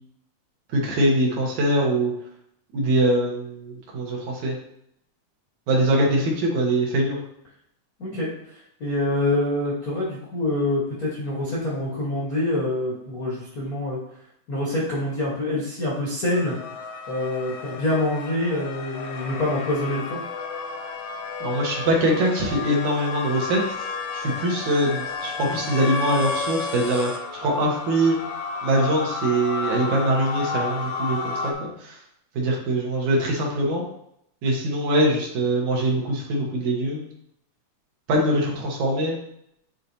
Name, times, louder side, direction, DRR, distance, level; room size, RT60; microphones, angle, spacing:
voice 1, 0.7-2.1 2.7-4.6 5.7-7.2 21.4-23.6 24.1-28.2 28.6-32.0 32.4-33.8 34.4-37.1 38.1-39.2, right 1 dB, 70° right, -2 dB, 2.4 m, -23 dB
voice 2, 8.0-14.2 14.5-16.6 17.1-20.2, left 1 dB, 50° left, -6 dB, 1.1 m, -26 dB
sound 1, 16.3-31.5, left 4 dB, 90° left, 2.3 m, -32 dB
9.0 x 4.0 x 2.8 m, 0.74 s
omnidirectional pair, 3.7 m